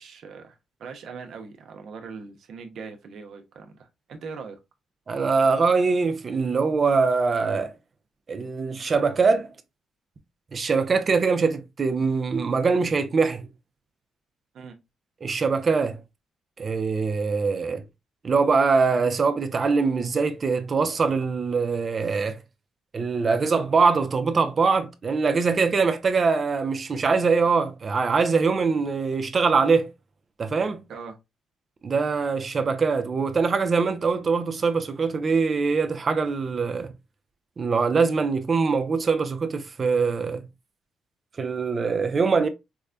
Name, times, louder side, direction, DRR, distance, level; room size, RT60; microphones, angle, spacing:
voice 1, 0.0-4.6 14.5-14.8 30.9-31.2, right 5 dB, 65° right, 0.8 m, -41 dB
voice 2, 5.1-7.7 8.3-9.5 10.5-13.5 15.2-16.0 16.6-17.8 18.2-22.4 22.9-29.9 30.4-30.8 31.8-36.9 37.6-40.4 41.4-42.5, right 4 dB, 40° right, 0.5 m, -23 dB
4.6 x 2.1 x 2.5 m
cardioid pair, 90°, 0 cm